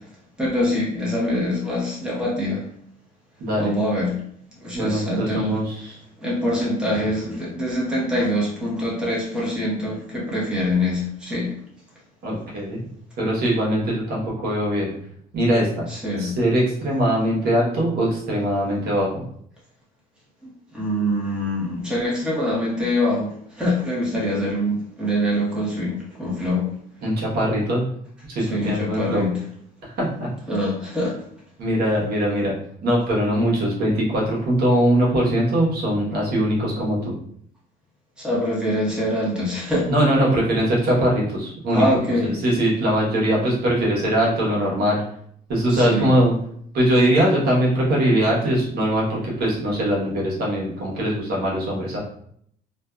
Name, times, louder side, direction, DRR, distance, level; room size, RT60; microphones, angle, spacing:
voice 1, 0.4-2.6 3.6-4.2 4.6-5.6 6.2-11.5 15.9-16.4 20.4-26.7 28.5-29.4 30.5-31.2 38.2-39.9 41.7-42.3 45.7-46.1, left 1 dB, 5° right, -6 dB, 0.9 m, -24 dB
voice 2, 3.4-3.7 4.7-6.0 12.2-12.8 13.2-14.9 15.3-15.7 16.2-19.2 27.0-27.8 28.3-29.3 30.0-30.3 31.6-32.5 32.8-37.0 39.9-41.8 42.2-45.0 45.5-46.4 46.7-52.0, right 1 dB, 65° right, -4 dB, 1.0 m, -21 dB
2.5 x 2.3 x 2.2 m, 0.65 s
cardioid pair, 110°, 17 cm